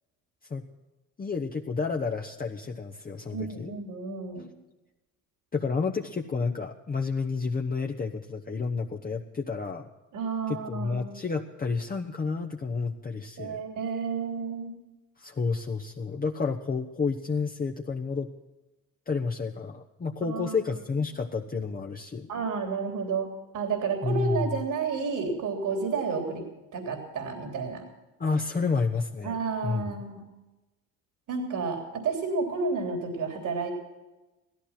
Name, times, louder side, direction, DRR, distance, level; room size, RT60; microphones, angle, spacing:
voice 1, 1.2-3.7 5.5-9.8 10.5-13.6 15.2-18.3 19.1-22.3 24.0-24.6 28.2-29.3 29.6-29.9, left 4 dB, 25° left, 2 dB, 1.0 m, -30 dB
voice 2, 3.3-4.5 10.1-11.2 13.4-14.8 20.3-20.6 22.3-23.3 23.5-26.4 26.7-27.8 29.2-30.2 31.3-33.7, right 5 dB, 70° right, 2 dB, 3.4 m, -31 dB
16.5 x 14.0 x 5.9 m, 1.1 s
cardioid pair, 90°, 33 cm